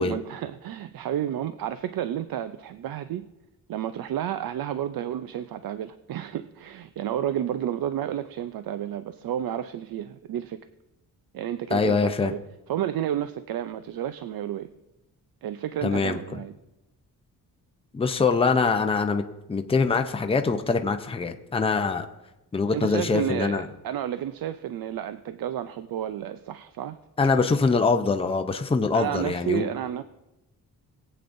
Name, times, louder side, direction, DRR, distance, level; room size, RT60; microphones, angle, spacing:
voice 1, 0.0-3.2 3.7-10.6 11.3-12.4 12.7-14.7 15.4-16.5 22.7-27.0 28.9-30.0, right 11 dB, 75° right, 11 dB, 0.5 m, -31 dB
voice 2, 11.7-12.3 15.8-16.2 17.9-19.2 19.5-22.1 22.5-23.6 27.2-29.7, left 4 dB, 15° left, 6 dB, 0.6 m, -23 dB
21.5 x 8.5 x 2.6 m, 0.96 s
wide cardioid pair, 160°, 35 cm